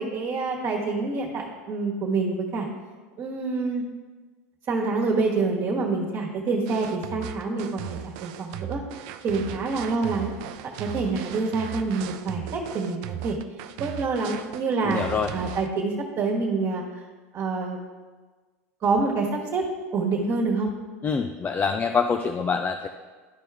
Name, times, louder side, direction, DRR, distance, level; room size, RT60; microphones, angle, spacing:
voice 1, 0.0-2.7 3.2-3.8 4.7-8.8 9.2-10.3 10.8-13.4 13.8-15.0 15.3-16.8 17.3-17.8 18.8-19.6 19.9-20.7, right 3 dB, 40° right, -2 dB, 1.5 m, -26 dB
sound 1, 6.7-15.7, right 10 dB, 60° right, 0.6 m, -37 dB
voice 2, 14.8-15.3 21.0-22.9, left 5 dB, 25° left, 6 dB, 0.4 m, -25 dB
12.0 x 4.5 x 3.6 m, 1.4 s
hypercardioid pair, 100°, 8 cm